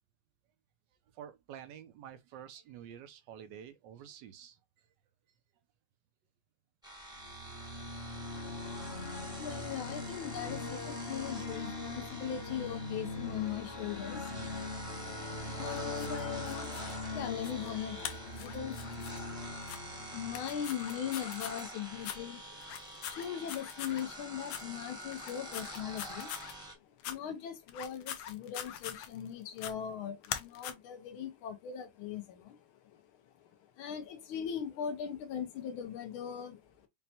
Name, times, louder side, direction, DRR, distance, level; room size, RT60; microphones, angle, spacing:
voice 1, 1.1-4.6 14.3-14.8, right 9 dB, 75° right, 1.0 m, -49 dB
sound 1, 6.8-26.7, right 1 dB, 5° right, 0.6 m, -47 dB
sound 2, 7.1-21.3, left 2 dB, 50° left, 0.7 m, -42 dB
voice 2, 8.7-19.2 19.4-19.5 19.8-33.5 33.8-36.9, left 9 dB, 70° left, 1.6 m, -40 dB
sound 3, 15.7-17.0 17.4-17.7 18.0-19.2 19.6-19.8 20.3-21.6 22.0-22.2 22.6-24.0 24.5-24.6 25.1-26.5 27.0-27.2 27.7-29.3 29.6-29.7 30.2-30.7, left 10 dB, 90° left, 1.6 m, -42 dB
5.4 x 2.2 x 2.8 m
omnidirectional pair, 2.4 m